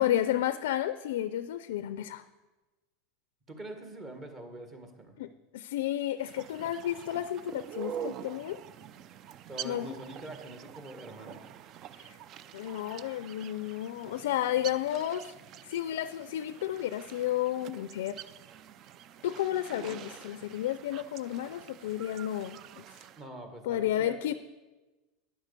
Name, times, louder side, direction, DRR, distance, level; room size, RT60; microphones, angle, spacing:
voice 1, 0.0-2.2 5.2-8.6 9.6-10.0 12.0-12.2 12.5-15.3 15.6-18.2 19.2-22.8 23.6-24.3, left 12 dB, 80° left, 13 dB, 0.4 m, -32 dB
voice 2, 3.5-5.1 9.5-11.4 23.2-24.3, right 1 dB, 30° right, 5 dB, 1.8 m, -44 dB
sound 1, 6.2-23.2, right 9 dB, 45° right, 0.4 m, -46 dB
10.0 x 6.2 x 6.7 m, 1.2 s
supercardioid pair, 115°, 0 cm